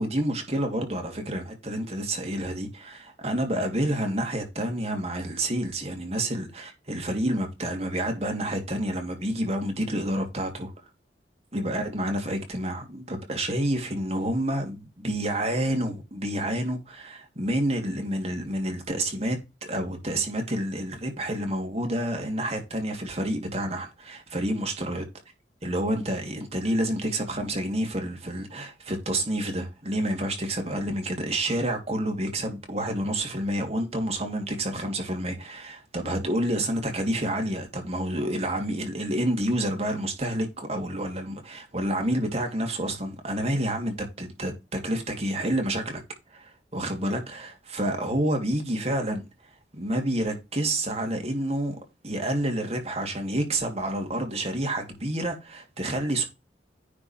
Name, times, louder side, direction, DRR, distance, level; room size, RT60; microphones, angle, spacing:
voice 1, 0.0-10.7 11.5-25.0 25.6-46.0 46.3-49.2 49.7-51.8 52.0-56.2, right 1 dB, 35° right, 2.8 m, -29 dB
10.5 x 4.6 x 4.4 m
head